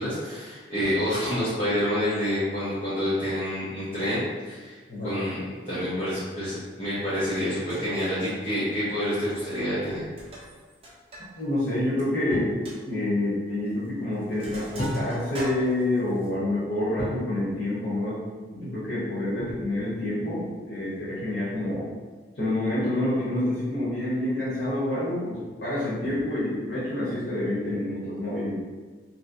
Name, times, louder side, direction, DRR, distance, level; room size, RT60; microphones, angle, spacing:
voice 1, 0.0-4.8 5.0-5.4 5.6-10.1, equal, 30° left, -13 dB, 1.0 m, -28 dB
Sink (filling or washing), 7.3-7.4 7.7-8.2 9.2-9.6 9.9-11.3 11.6-11.7 12.1-12.2 12.7-12.8 13.7-13.9 14.1-16.3, right 1 dB, 30° right, 0.6 m, -42 dB
voice 2, 11.4-18.2 18.5-21.9 22.4-28.6, left 1 dB, 80° left, -10 dB, 1.1 m, -28 dB
sound 1, 12.3-12.6 14.8-15.4 17.0-17.3 19.4-19.9, equal, 60° left, 1.5 m, -33 dB
3.1 x 2.8 x 2.7 m, 1.4 s
head